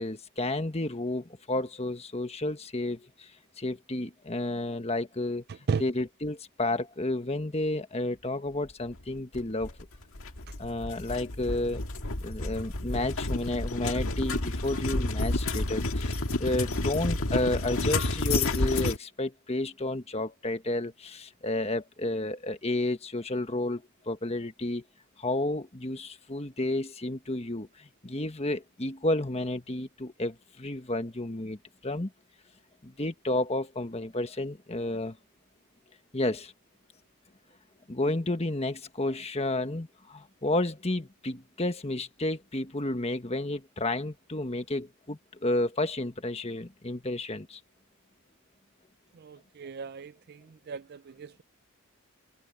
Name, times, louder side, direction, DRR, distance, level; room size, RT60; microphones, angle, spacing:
voice 1, 0.0-3.3 3.6-5.4 5.8-9.8 10.6-11.8 12.2-24.8 25.2-32.1 32.8-35.2 36.1-36.5 37.9-47.6, left 2 dB, 30° left, 1.4 m, -31 dB
sound 1, 9.3-19.0, left 2 dB, 65° left, 1.9 m, -30 dB
voice 2, 49.2-50.4 50.7-51.4, right 5 dB, 45° right, 0.4 m, -34 dB
head